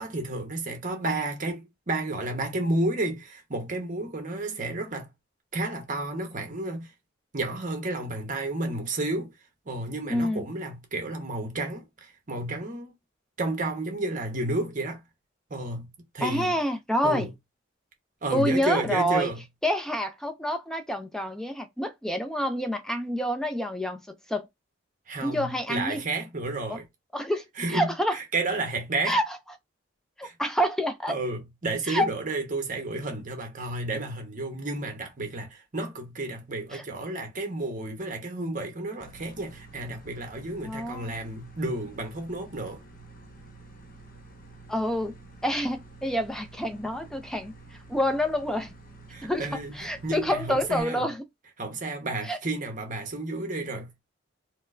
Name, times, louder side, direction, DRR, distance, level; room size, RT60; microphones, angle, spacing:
voice 1, 0.0-5.1 5.5-6.9 7.3-9.3 9.7-12.9 13.4-15.0 15.5-15.9 16.1-16.5 17.0-17.3 18.2-19.4 25.1-26.8 27.6-29.2 30.2-30.3 31.1-42.8 49.1-51.1 51.6-54.0, right 2 dB, 45° right, 0.9 m, -31 dB
voice 2, 10.1-10.4 16.2-17.3 18.3-19.3 19.6-24.5 25.2-26.0 26.7-26.8 27.1-28.2 29.1-29.3 30.2-31.2 31.9-32.1 36.7-36.8 40.6-41.1 44.7-45.1 45.4-47.6 47.9-48.7 49.2-49.5 49.7-51.2 52.2-52.4, equal, 5° left, 0.5 m, -27 dB
sound 1, 39.0-50.8, right 2 dB, 45° left, 0.9 m, -49 dB
4.3 x 2.1 x 2.5 m
head